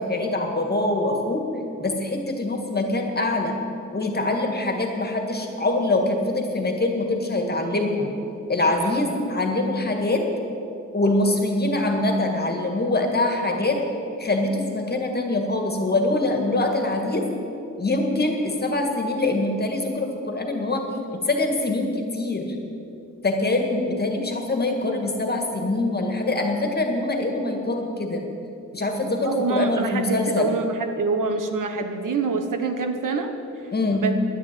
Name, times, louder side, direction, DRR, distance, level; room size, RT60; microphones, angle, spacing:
voice 1, 0.0-1.4 1.8-3.5 3.9-8.1 8.5-10.3 10.9-13.8 14.2-17.3 17.8-20.8 21.1-22.5 23.2-28.2 28.7-30.5 33.7-34.1, left 2 dB, 30° left, 3 dB, 1.8 m, -24 dB
voice 2, 29.2-33.3 33.9-34.1, right 4 dB, 85° right, 6 dB, 1.2 m, -25 dB
10.5 x 9.9 x 9.0 m, 2.8 s
wide cardioid pair, 130°, 31 cm